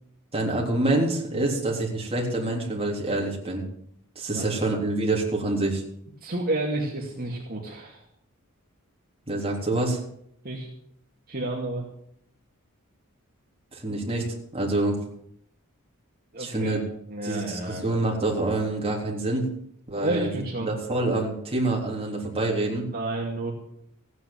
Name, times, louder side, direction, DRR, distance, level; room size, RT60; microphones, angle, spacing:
voice 1, 0.3-3.7 4.2-5.8 9.3-10.0 13.7-14.2 14.5-15.0 16.4-16.8 17.2-19.5 19.9-22.9, right 2 dB, 25° right, -2 dB, 3.6 m, -26 dB
voice 2, 6.2-8.1 10.4-10.7 11.3-11.8 16.3-16.8 17.1-17.8 20.0-20.7 22.9-23.5, right 2 dB, 45° right, -2 dB, 2.4 m, -30 dB
15.5 x 9.6 x 7.4 m, 0.70 s
head